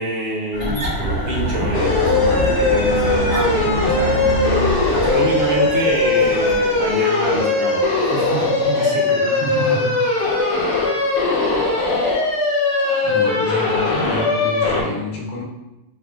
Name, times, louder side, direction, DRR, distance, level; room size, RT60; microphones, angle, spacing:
voice 1, 0.0-4.2 4.9-7.8 8.1-9.3, right 1 dB, 65° right, -5 dB, 1.1 m, -26 dB
sound 1, 0.5-7.0, equal, 15° right, 1.0 m, -25 dB
sound 2, 1.6-14.8, right 1 dB, 45° right, 0.7 m, -32 dB
sound 3, 1.7-14.8, left 3 dB, 60° left, 0.7 m, -19 dB
voice 2, 9.3-10.0 13.0-15.4, left 1 dB, 85° left, -2 dB, 1.2 m, -28 dB
3.3 x 2.3 x 2.3 m, 1.0 s
omnidirectional pair, 1.5 m